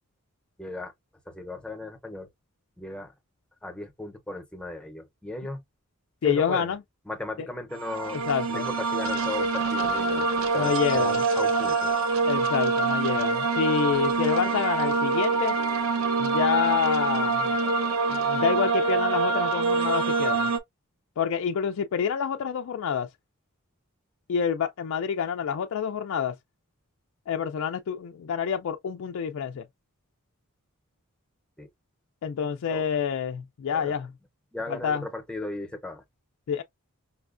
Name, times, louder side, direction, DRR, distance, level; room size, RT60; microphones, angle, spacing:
voice 1, 0.6-0.9 1.3-2.3 2.8-3.1 3.6-5.6 6.2-6.7 7.1-10.3 10.5-11.9 31.6-31.7 32.7-32.9 33.7-34.0 34.5-36.0, left 2 dB, 5° left, 0.6 m, -36 dB
voice 2, 6.2-6.8 8.1-8.6 10.5-11.2 12.2-15.6 16.2-17.5 18.1-20.5 21.2-23.1 24.3-26.3 27.3-29.6 32.2-34.1 34.7-35.0 36.5-36.6, left 7 dB, 65° left, 0.3 m, -27 dB
sound 1, 7.7-20.6, right 4 dB, 65° right, 0.6 m, -25 dB
5.4 x 2.1 x 2.4 m
head